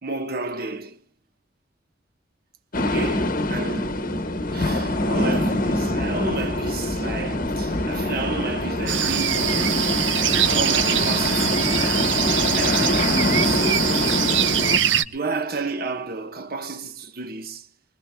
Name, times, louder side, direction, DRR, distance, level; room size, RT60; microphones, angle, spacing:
voice 1, 0.0-1.0 2.8-3.9 4.5-10.2 10.4-11.7 12.5-14.3 15.1-17.7, right 3 dB, 50° right, 1.2 m, -31 dB
sound 1, 2.7-14.8, left 1 dB, 45° left, 1.1 m, -24 dB
sound 2, 8.9-15.0, right 10 dB, 75° right, 0.8 m, -23 dB
23.5 x 22.0 x 2.3 m
head